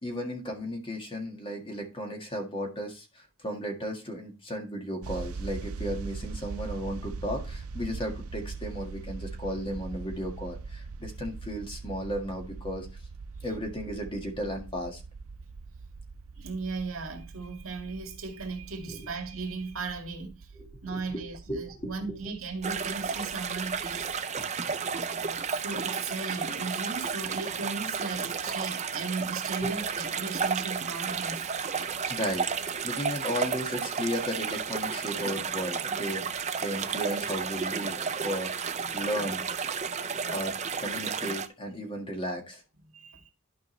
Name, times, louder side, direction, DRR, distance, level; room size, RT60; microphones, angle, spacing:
voice 1, 0.0-12.9 13.4-15.0 18.9-19.1 20.6-22.2 29.6-29.7 32.1-32.5 32.8-36.2 36.6-39.4 40.3-42.6, equal, 25° left, 1.8 m, -35 dB
sound 1, 5.0-24.2, right 4 dB, 85° right, 0.5 m, -42 dB
voice 2, 16.4-20.5 20.8-24.1 25.4-31.5 36.7-36.8 42.9-43.3, right 4 dB, 65° right, 2.0 m, -37 dB
sound 2, 22.6-41.5, right 6 dB, 30° right, 0.6 m, -32 dB
12.0 x 5.2 x 3.2 m
head